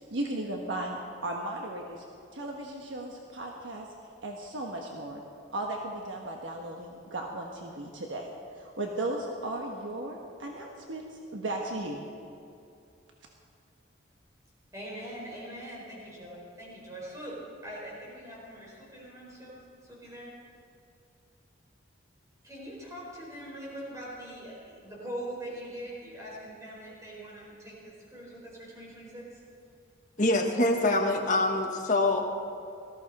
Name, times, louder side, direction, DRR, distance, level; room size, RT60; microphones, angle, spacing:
voice 1, 0.0-2.0 2.3-5.2 5.5-12.0, right 1 dB, 85° right, 1 dB, 1.2 m, -36 dB
voice 2, 14.7-17.3 17.6-19.6 19.9-20.3 22.4-29.3, right 1 dB, 15° right, -5 dB, 4.6 m, -42 dB
voice 3, 30.2-32.2, left 2 dB, 40° left, 1 dB, 1.5 m, -25 dB
18.5 x 14.5 x 4.2 m, 2.6 s
head